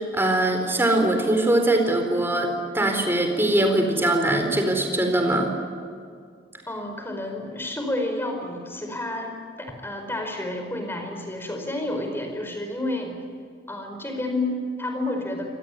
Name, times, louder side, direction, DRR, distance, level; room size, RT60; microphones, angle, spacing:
voice 1, 0.0-5.5, right 1 dB, 15° right, 4 dB, 4.2 m, -22 dB
voice 2, 6.7-13.2 13.7-15.5, left 1 dB, 15° left, 4 dB, 4.9 m, -30 dB
27.0 x 18.5 x 9.4 m, 2.2 s
head